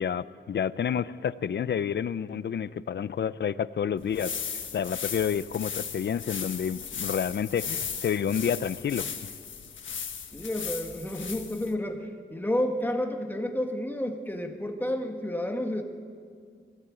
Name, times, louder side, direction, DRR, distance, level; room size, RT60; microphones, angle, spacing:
voice 1, 0.0-9.1, left 8 dB, 65° left, 16 dB, 0.6 m, -29 dB
sound 1, 4.0-11.7, left 7 dB, 80° left, 1.5 m, -37 dB
voice 2, 10.3-15.8, left 1 dB, 10° left, 2 dB, 1.8 m, -30 dB
22.5 x 17.5 x 8.7 m, 2.2 s
wide cardioid pair, 145°, 19 cm